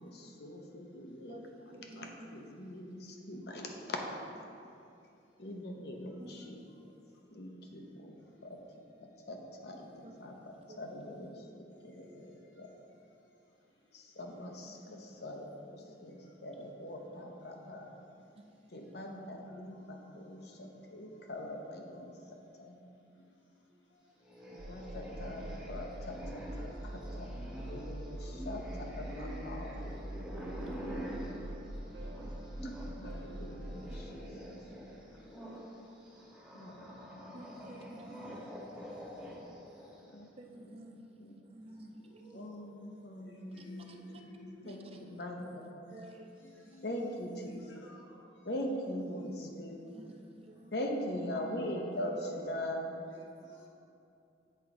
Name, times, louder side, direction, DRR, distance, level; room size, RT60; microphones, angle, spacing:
voice 1, 0.0-1.4 2.0-4.0 5.4-6.9 7.3-8.1 8.4-8.6 9.2-12.7 13.9-17.9 18.7-22.8 24.5-29.8 32.6-34.4 36.5-37.4 37.6-38.0 40.1-40.3 40.6-41.4 42.3-45.9 46.8-47.7 48.4-50.0 50.7-53.0, left 1 dB, 55° left, 1 dB, 0.7 m, -42 dB
voice 2, 1.7-2.3 6.2-6.9 9.7-10.2 10.6-10.8 14.6-15.2 18.3-18.9 30.3-30.9 37.3-38.7 40.4-42.3 44.6-45.6 45.9-46.8 49.9-50.7, right 1 dB, 30° right, 3 dB, 0.4 m, -53 dB
sound 1, 24.2-33.0 33.3-40.1, equal, 5° right, 1.1 m, -46 dB
sound 2, 24.6-34.1, right 1 dB, 75° right, 1.0 m, -43 dB
voice 3, 42.0-42.8 43.2-44.8 46.0-46.1 46.4-47.0 47.5-48.2 48.8-48.9 49.4-49.8 51.5-51.7 53.1-53.7, left 1 dB, 80° left, -2 dB, 1.2 m, -57 dB
7.8 x 3.8 x 4.7 m, 2.6 s
head